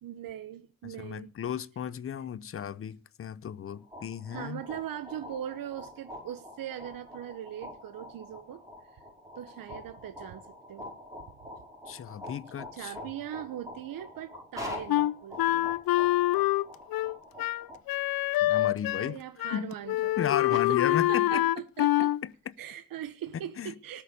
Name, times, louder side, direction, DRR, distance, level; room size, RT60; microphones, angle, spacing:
voice 1, 0.0-1.3 4.3-9.0 9.4-10.9 12.7-15.7 19.0-20.2 20.5-22.1 22.6-24.0, right 11 dB, 75° right, 1.2 m, -40 dB
voice 2, 0.8-4.6 11.9-12.9 18.4-19.2 19.5-19.7 20.2-21.4 22.2-22.3 23.6-23.7, left 9 dB, 40° left, 0.8 m, -34 dB
sound 1, 3.7-17.8, left 1 dB, 10° right, 5.7 m, -45 dB
Wind instrument woodwind instrument, 14.9-19.1 19.4-19.6 19.9-22.2, left 16 dB, 85° left, 0.7 m, -26 dB
18.5 x 6.8 x 8.3 m
cardioid pair, 145°, 34 cm